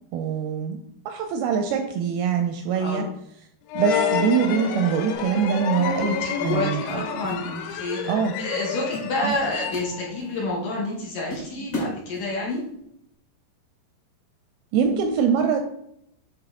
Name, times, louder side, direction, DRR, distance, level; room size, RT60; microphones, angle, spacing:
voice 1, 0.1-0.8 1.1-3.1 3.8-6.1 6.4-7.0 8.1-8.4 9.2-9.3 14.7-15.6, right 7 dB, 80° right, 6 dB, 2.2 m, -23 dB
voice 2, 2.7-3.1 6.0-12.6, left 2 dB, 65° left, -3 dB, 2.3 m, -29 dB
sound 1, 3.7-10.2, left 7 dB, 85° left, 2.8 m, -29 dB
sound 2, 5.2-5.4 6.5-7.4 7.7-8.0 8.5-8.6 8.9-10.4 10.8-10.9 11.3-12.6, left 1 dB, 45° left, 1.0 m, -35 dB
10.0 x 3.7 x 3.6 m, 0.77 s
omnidirectional pair, 4.7 m